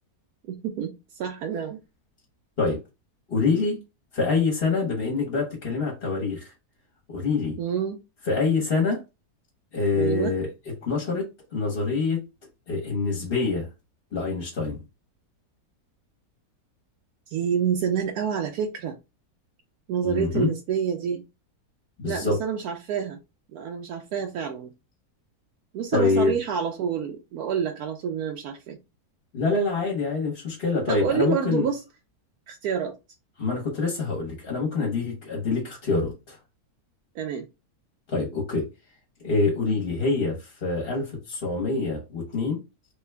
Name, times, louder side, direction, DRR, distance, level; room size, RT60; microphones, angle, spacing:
voice 1, 0.5-1.8 7.6-8.0 9.9-10.3 17.3-18.9 19.9-21.2 22.1-23.2 23.5-24.7 25.7-28.8 30.9-31.8 32.5-32.9 37.1-37.4, right 7 dB, 80° right, 1.1 m, -28 dB
voice 2, 3.3-3.8 4.1-6.5 7.1-7.6 8.3-9.0 9.7-10.5 10.8-12.2 12.7-13.7 14.1-14.8 20.0-20.5 22.0-22.4 25.9-26.3 29.3-31.7 33.4-36.4 38.1-38.7 39.2-42.6, left 4 dB, 45° left, 1.0 m, -25 dB
3.3 x 2.2 x 3.2 m
omnidirectional pair, 1.6 m